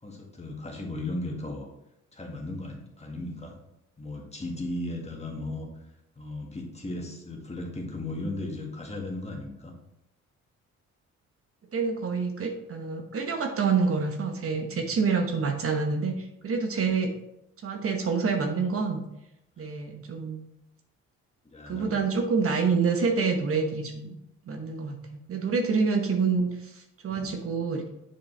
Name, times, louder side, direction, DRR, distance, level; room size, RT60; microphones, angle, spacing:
voice 1, 0.0-1.7 2.1-3.6 4.0-5.7 6.2-9.7 16.8-16.9 19.6-19.7 21.5-22.0 27.1-27.3, left 2 dB, 20° left, 0 dB, 1.7 m, -36 dB
voice 2, 11.7-17.1 17.6-19.0 19.6-20.4 21.7-24.2 24.5-27.9, right 5 dB, 50° right, 4 dB, 1.0 m, -27 dB
7.0 x 5.2 x 3.3 m, 0.82 s
cardioid pair, 90°, 30 cm